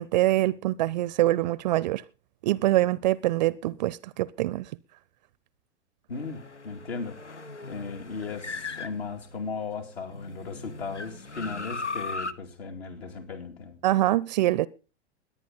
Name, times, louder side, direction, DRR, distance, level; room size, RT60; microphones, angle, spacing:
voice 1, 0.0-2.0 2.4-4.7 13.8-14.7, right 16 dB, 40° right, 0.5 m, -24 dB
sound 1, 6.1-9.6 10.1-12.3, left 3 dB, 85° left, 1.0 m, -38 dB
voice 2, 6.1-13.8, left 4 dB, 60° left, 2.5 m, -37 dB
21.0 x 9.2 x 3.9 m
figure-of-eight pair, 100°, 34 cm